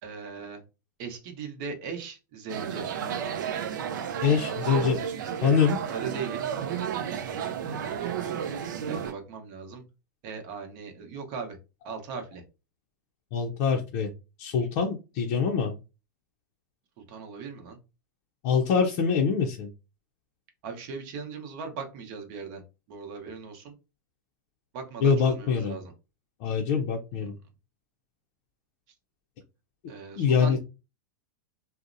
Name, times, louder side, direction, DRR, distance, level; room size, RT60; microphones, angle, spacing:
voice 1, 0.0-0.6 1.0-2.9 3.2-3.3 4.2-5.1 5.9-6.5 7.3-8.3 8.8-9.8 10.2-11.6 11.8-12.4 17.0-17.8 20.6-23.7 24.7-25.9 29.9-30.6, right 5 dB, 50° right, 5 dB, 0.8 m, -39 dB
sound 1, 2.5-9.1, right 8 dB, 75° right, 0.4 m, -32 dB
voice 2, 4.2-5.0 5.4-5.8 13.3-14.1 14.4-15.7 18.4-19.7 25.0-25.7 26.4-27.3 30.2-30.6, left 6 dB, 50° left, 0 dB, 0.5 m, -24 dB
2.7 x 2.0 x 2.5 m, 0.29 s
hypercardioid pair, 110°, 10 cm